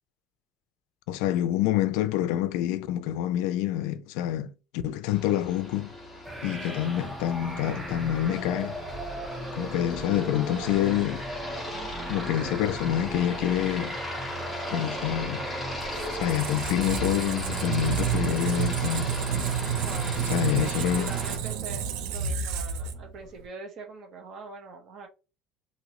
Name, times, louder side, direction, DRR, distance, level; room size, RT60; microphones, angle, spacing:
voice 1, 1.1-4.5 4.8-5.9 6.4-8.7 9.5-11.3 12.1-14.0 14.7-15.5 16.1-19.2 20.2-21.2, left 12 dB, 80° left, 0.3 m, -27 dB
Aircraft, 5.1-21.4, left 1 dB, 10° left, 1.5 m, -37 dB
sound 1, 6.3-16.8, right 1 dB, 10° right, 0.6 m, -37 dB
Squeak, 15.7-23.4, right 8 dB, 80° right, 0.5 m, -30 dB
voice 2, 19.8-25.1, right 3 dB, 40° right, 1.0 m, -43 dB
2.9 x 2.6 x 3.0 m
cardioid pair, 155°, 0 cm